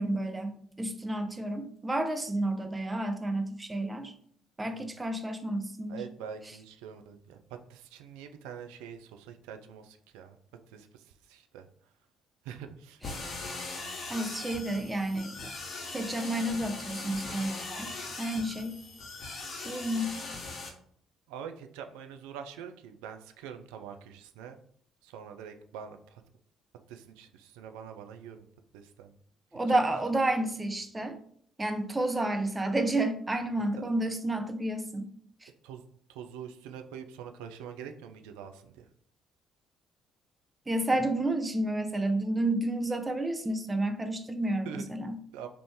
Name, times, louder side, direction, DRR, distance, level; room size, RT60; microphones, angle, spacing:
voice 1, 0.0-4.1 4.6-6.0 13.0-13.1 14.1-15.5 15.9-18.7 19.6-20.1 29.5-31.2 31.6-35.1 35.4-35.5 40.7-45.2, right 1 dB, 20° right, 7 dB, 0.6 m, -30 dB
voice 2, 5.9-10.4 10.7-11.7 12.4-13.0 21.3-24.6 25.0-26.2 26.9-28.5 28.7-29.2 29.7-29.8 35.6-35.8 36.1-38.9 44.7-44.8 45.3-45.5, right 8 dB, 70° right, 7 dB, 0.3 m, -44 dB
sound 1, 13.0-20.7, left 3 dB, 45° left, 0.8 m, -40 dB
2.9 x 2.5 x 3.6 m, 0.63 s
figure-of-eight pair, 50°, 0 cm